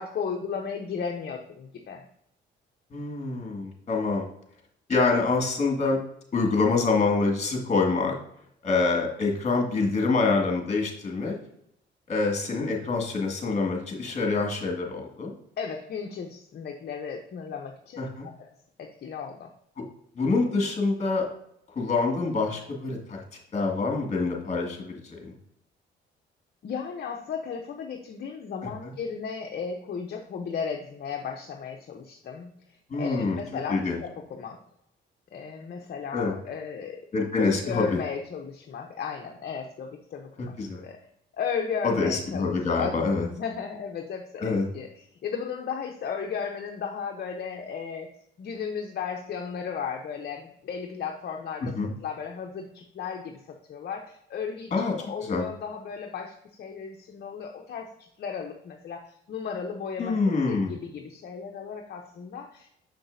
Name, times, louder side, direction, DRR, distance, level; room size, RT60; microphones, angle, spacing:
voice 1, 0.0-2.1 15.6-18.1 18.4-18.5 18.8-19.5 26.6-32.5 33.0-34.6 35.3-37.1 37.4-41.1 41.3-48.1 48.4-51.7 52.0-60.2 60.5-62.7, left 6 dB, 55° left, 2 dB, 0.8 m, -35 dB
voice 2, 2.9-4.3 4.9-6.0 6.3-8.2 8.6-11.4 12.1-15.3 18.0-18.3 20.2-21.3 21.8-23.2 23.5-25.3 28.8-28.9 32.9-33.4 33.7-34.0 36.1-36.3 37.1-37.9 40.6-40.8 41.8-43.3 44.4-44.6 51.6-51.9 54.7-54.9 55.2-55.5 60.0-60.7, left 3 dB, 35° left, 0 dB, 2.0 m, -26 dB
6.7 x 6.0 x 2.6 m, 0.74 s
cardioid pair, 90°, 20 cm